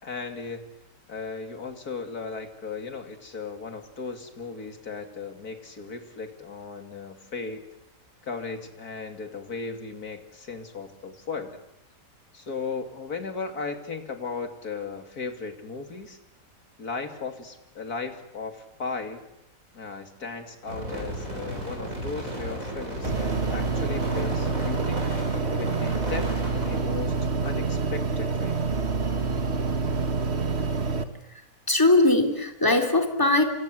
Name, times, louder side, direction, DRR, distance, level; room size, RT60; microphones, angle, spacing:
voice 1, 0.0-0.7 1.1-7.6 8.2-11.6 12.3-16.2 16.8-19.2 19.7-25.0 25.5-28.6, left 4 dB, 85° left, 6 dB, 3.2 m, -36 dB
sound 1, 20.7-26.8, right 1 dB, 65° right, 7.9 m, -35 dB
sound 2, 23.0-31.0, right 4 dB, 45° right, 1.7 m, -27 dB
voice 2, 31.7-33.4, left 2 dB, 15° left, 4 dB, 3.3 m, -20 dB
26.5 x 26.5 x 7.9 m, 0.81 s
omnidirectional pair, 1.6 m